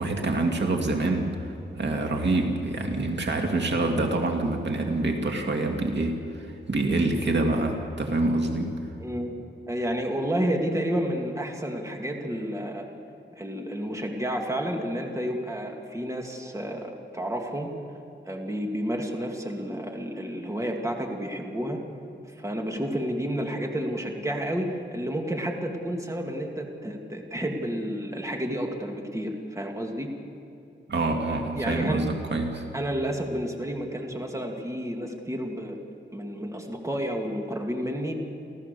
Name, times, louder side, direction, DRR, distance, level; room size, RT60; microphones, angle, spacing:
voice 1, 0.0-1.5 1.8-8.8 30.9-32.6, right 2 dB, 65° right, 2 dB, 2.1 m, -26 dB
voice 2, 9.0-9.3 9.7-12.9 13.3-17.7 18.2-21.8 22.4-30.1 31.3-32.0 32.7-35.8 36.1-38.1, equal, 15° right, 1 dB, 2.3 m, -30 dB
30.0 x 14.0 x 6.8 m, 2.7 s
wide cardioid pair, 105°, 19 cm